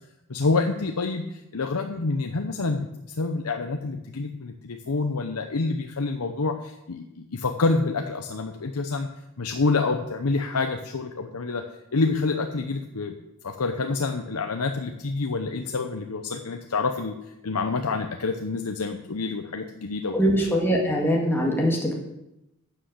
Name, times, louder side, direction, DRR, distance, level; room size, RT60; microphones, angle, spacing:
voice 1, 0.3-9.1 9.4-11.6 11.9-13.1 13.4-17.1 17.4-20.1, left 3 dB, 85° left, 5 dB, 0.8 m, -27 dB
voice 2, 20.1-22.0, equal, 10° left, -2 dB, 1.8 m, -22 dB
11.5 x 7.7 x 6.6 m, 0.90 s
head